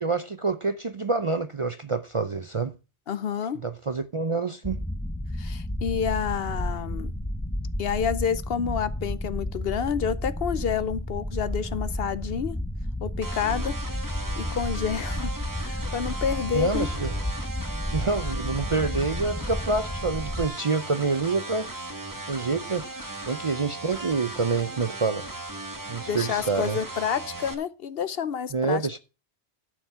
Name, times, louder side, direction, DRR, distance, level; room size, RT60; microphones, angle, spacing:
voice 1, 0.0-2.7 3.6-4.8 16.5-17.1 17.9-21.7 22.3-25.3 25.9-26.8 28.5-29.0, right 4 dB, 40° right, 0.5 m, -27 dB
voice 2, 3.1-3.6 5.4-7.1 7.8-12.6 13.0-13.8 14.4-16.9 26.1-29.0, left 7 dB, 65° left, 0.9 m, -29 dB
sound 1, 4.6-20.5, left 1 dB, 10° left, 0.8 m, -32 dB
sound 2, 13.2-27.5, right 2 dB, 20° right, 1.4 m, -37 dB
11.5 x 7.1 x 5.5 m
omnidirectional pair, 1.1 m